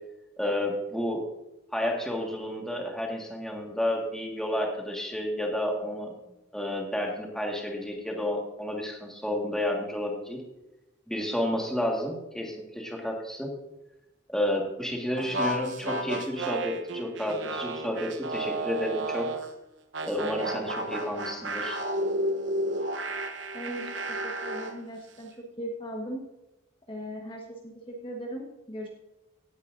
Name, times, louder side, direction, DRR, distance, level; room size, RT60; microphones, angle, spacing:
voice 1, 0.4-1.2 1.7-6.1 6.5-10.4 11.1-13.5 14.3-19.3 20.1-21.8, left 1 dB, 5° left, 0 dB, 1.7 m, -31 dB
sound 1, 15.2-19.5 19.9-24.8, right 1 dB, 65° right, 1.0 m, -32 dB
voice 2, 23.5-26.3 26.9-28.9, equal, 25° left, 0 dB, 1.3 m, -38 dB
17.0 x 10.0 x 2.6 m, 0.95 s
head